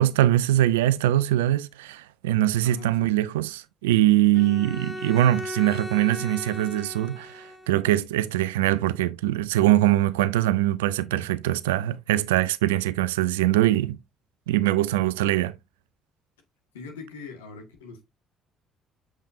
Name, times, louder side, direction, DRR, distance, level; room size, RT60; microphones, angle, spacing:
voice 1, 0.0-14.0 14.5-15.5, right 14 dB, 85° right, 0.4 m, -22 dB
voice 2, 2.6-3.1 16.7-18.0, left 4 dB, 85° left, 1.8 m, -41 dB
Bowed string instrument, 4.3-7.9, left 1 dB, 5° left, 1.5 m, -37 dB
7.4 x 5.1 x 2.6 m
hypercardioid pair, 55°, 0 cm